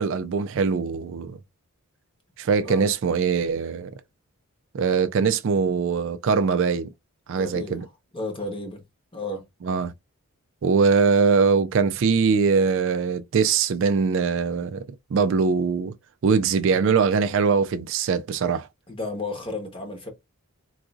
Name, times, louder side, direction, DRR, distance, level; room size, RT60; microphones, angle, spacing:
voice 1, 0.0-1.4 2.4-3.9 4.7-6.9 7.3-7.8 9.6-9.9 10.6-14.9 15.1-15.9 16.2-18.7, right 5 dB, 55° right, 0.3 m, -22 dB
voice 2, 7.4-8.8 9.1-9.4 18.9-20.1, left 2 dB, 25° left, 0.9 m, -33 dB
3.9 x 2.5 x 2.3 m
head